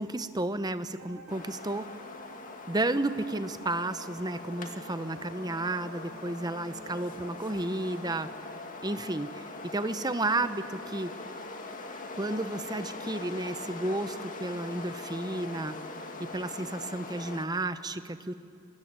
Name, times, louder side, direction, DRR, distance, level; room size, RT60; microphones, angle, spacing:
voice 1, 0.0-1.9 2.7-8.3 8.8-11.1 12.1-15.8 16.2-18.3, right 2 dB, 20° right, 11 dB, 0.9 m, -32 dB
sound 1, 1.0-8.7, right 1 dB, 85° right, 4.1 m, -51 dB
sound 2, 1.3-17.5, left 3 dB, 35° left, 2.2 m, -42 dB
28.5 x 23.5 x 8.8 m, 2.5 s
head